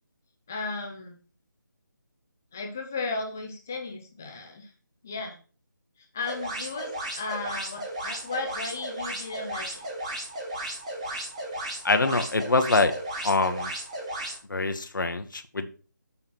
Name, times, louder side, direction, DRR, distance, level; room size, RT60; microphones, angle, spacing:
voice 1, 0.5-1.2 2.5-4.7 5.0-5.4 6.1-9.8, left 3 dB, 10° left, 3 dB, 0.4 m, -35 dB
sound 1, 6.2-14.4, right 1 dB, 20° right, 1.4 m, -35 dB
voice 2, 11.8-12.9 13.2-13.7 14.5-15.7, left 3 dB, 85° left, 7 dB, 1.1 m, -24 dB
7.2 x 4.3 x 6.1 m, 0.38 s
figure-of-eight pair, 175°, 10 cm